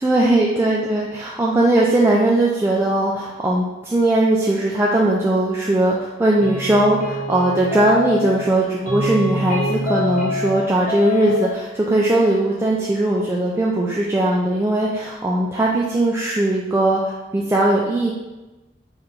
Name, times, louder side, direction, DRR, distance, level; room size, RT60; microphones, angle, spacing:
voice 1, 0.0-18.1, right 1 dB, 15° right, -4 dB, 0.3 m, -19 dB
sound 1, 6.4-8.5 8.9-10.6 10.9-11.5, left 2 dB, 45° left, 0.9 m, -25 dB
4.3 x 2.5 x 3.9 m, 1.1 s
head